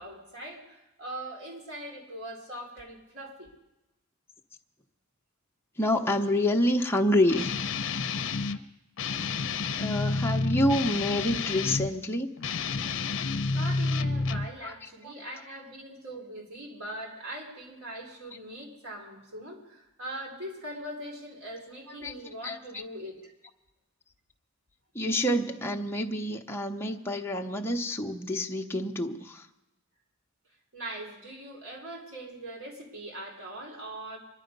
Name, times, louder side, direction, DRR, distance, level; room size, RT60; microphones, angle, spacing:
voice 1, 0.0-3.5 13.5-23.3 30.7-34.2, right 1 dB, 80° right, -1 dB, 4.1 m, -41 dB
voice 2, 5.8-7.6 9.8-12.3 14.6-14.7 15.0-15.1 22.0-22.8 24.9-29.4, left 1 dB, 10° left, 1 dB, 0.8 m, -28 dB
Guitar, 7.3-8.6 9.0-11.9 12.4-14.5, left 4 dB, 65° left, 0.7 m, -30 dB
24.0 x 10.5 x 5.3 m, 0.96 s
head